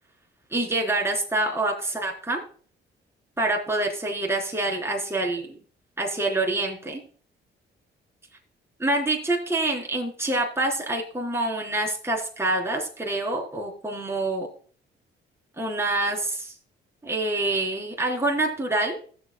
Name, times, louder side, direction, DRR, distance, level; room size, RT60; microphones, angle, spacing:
voice 1, 0.5-2.4 3.4-5.6 6.0-7.0 8.8-14.5 15.6-16.5 17.0-19.0, right 2 dB, 10° right, 0 dB, 3.8 m, -26 dB
15.5 x 8.0 x 2.2 m, 0.43 s
cardioid pair, 90°, 20 cm